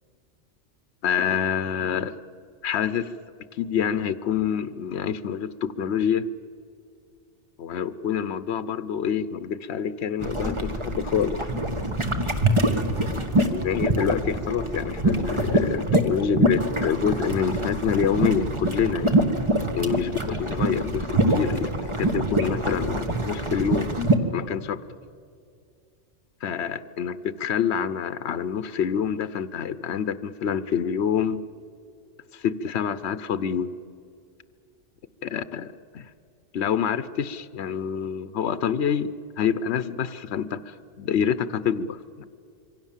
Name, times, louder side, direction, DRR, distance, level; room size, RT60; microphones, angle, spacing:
voice 1, 1.0-2.2 2.6-3.1 3.5-6.3 7.6-11.5 13.1-13.2 13.5-19.2 19.7-23.9 24.3-24.8 26.4-31.4 32.3-33.7 35.2-36.1 36.5-42.2, left 7 dB, 70° left, 14 dB, 1.0 m, -27 dB
sound 1, 10.2-24.2, right 1 dB, 25° right, 1.5 m, -25 dB
26.5 x 23.5 x 7.3 m, 2.3 s
omnidirectional pair, 1.2 m